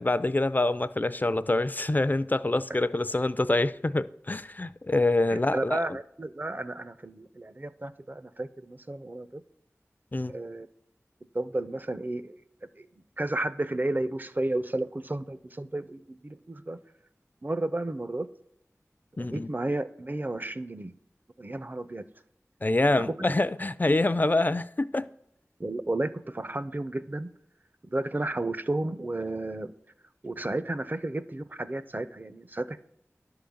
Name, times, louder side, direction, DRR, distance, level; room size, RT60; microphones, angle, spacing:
voice 1, 0.0-6.0 10.1-10.3 19.2-19.5 22.6-25.1, left 2 dB, 35° left, 0.4 m, -26 dB
voice 2, 5.3-9.4 10.3-10.7 11.3-12.3 12.8-12.9 13.2-16.8 17.4-18.3 19.2-20.9 21.4-22.0 22.9-23.3 25.6-27.3 27.8-29.7 30.2-32.8, right 2 dB, 35° right, 0.5 m, -32 dB
11.5 x 3.8 x 7.1 m
wide cardioid pair, 55°, 5 cm